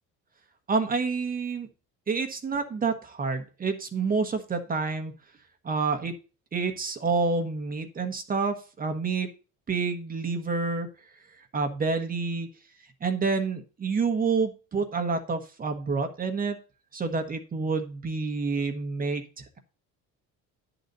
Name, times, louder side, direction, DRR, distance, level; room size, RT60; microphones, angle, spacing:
voice 1, 0.7-1.7 2.1-5.1 5.6-6.2 6.5-9.3 9.7-10.9 11.4-12.5 13.0-16.6 16.9-19.6, right 4 dB, 30° right, 6 dB, 1.2 m, -28 dB
10.0 x 4.0 x 6.7 m, 0.34 s
cardioid pair, 125°, 31 cm